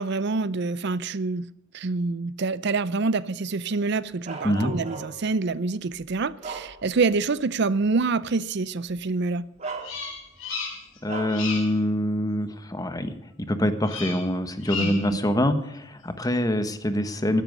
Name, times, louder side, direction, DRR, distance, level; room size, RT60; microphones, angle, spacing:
voice 1, 0.0-1.5 1.7-9.5 14.8-15.2, right 4 dB, 55° right, 0.5 m, -26 dB
Bark, 4.2-5.3 5.9-7.2 7.6-7.8 8.9-9.0 9.6-10.4 11.1-11.5, right 4 dB, 35° right, 2.9 m, -37 dB
Bird vocalization bird call bird song, 9.8-11.0 11.3-11.8 13.8-14.3 14.6-15.1, left 4 dB, 70° left, 6.3 m, -34 dB
voice 2, 11.0-17.4, left 1 dB, 20° left, 1.3 m, -25 dB
15.0 x 13.0 x 5.3 m
head